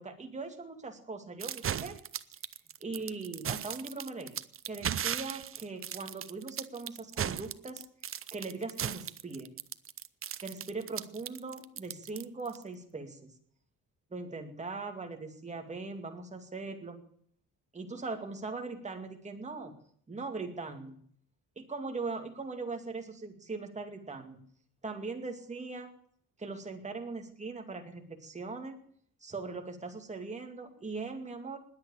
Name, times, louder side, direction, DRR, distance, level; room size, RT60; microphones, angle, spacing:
voice 1, 0.0-2.0 2.8-4.4 4.7-7.8 8.3-9.5 10.4-13.2 14.1-17.0 17.7-19.7 20.1-21.0 21.6-24.4 24.8-25.9 26.4-28.8 29.2-31.6, right 3 dB, 20° right, 4 dB, 2.4 m, -40 dB
sound 1, 1.4-12.6, right 9 dB, 35° right, 0.6 m, -37 dB
20.5 x 8.2 x 8.4 m, 0.63 s
cardioid pair, 165°, 36 cm